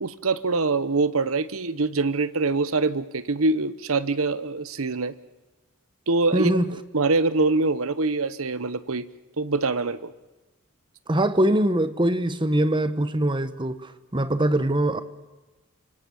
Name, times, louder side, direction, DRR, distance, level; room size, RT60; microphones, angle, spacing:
voice 1, 0.0-5.1 6.1-6.5 6.9-9.1 9.4-10.1, right 3 dB, 80° right, 1.0 m, -24 dB
voice 2, 6.3-6.7 11.1-15.0, right 1 dB, 20° right, 1.0 m, -23 dB
27.5 x 24.0 x 7.1 m
head